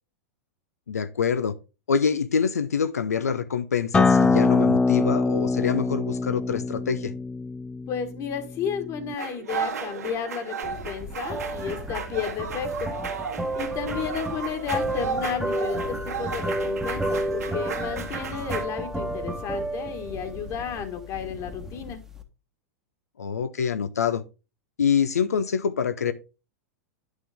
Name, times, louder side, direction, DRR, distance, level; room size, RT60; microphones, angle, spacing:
voice 1, 0.9-1.5 1.9-7.1 23.2-24.2 24.8-26.1, left 6 dB, 85° left, 0.6 m, -25 dB
Acoustic guitar, 3.9-9.1, left 3 dB, 15° left, 0.5 m, -23 dB
voice 2, 7.9-12.9 13.5-22.0, left 7 dB, 40° left, 1.6 m, -32 dB
sound 1, 9.2-18.7, right 6 dB, 80° right, 1.9 m, -34 dB
sound 2, 10.6-22.2, right 1 dB, 5° right, 1.2 m, -32 dB
9.4 x 6.4 x 3.5 m
hypercardioid pair, 100°, 8 cm